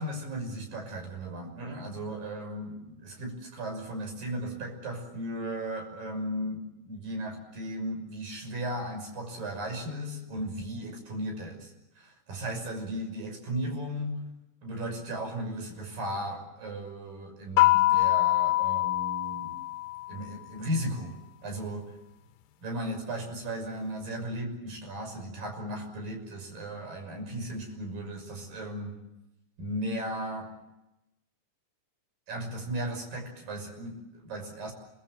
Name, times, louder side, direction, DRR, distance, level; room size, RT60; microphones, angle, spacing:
voice 1, 0.0-14.3 14.6-19.5 20.1-21.1 21.4-21.9 22.6-29.0 29.6-30.5 32.3-34.7, right 1 dB, 45° right, 4 dB, 7.7 m, -36 dB
sound 1, 17.6-20.3, left 17 dB, 85° left, 3.6 m, -24 dB
30.0 x 23.0 x 7.6 m, 0.91 s
omnidirectional pair, 5.5 m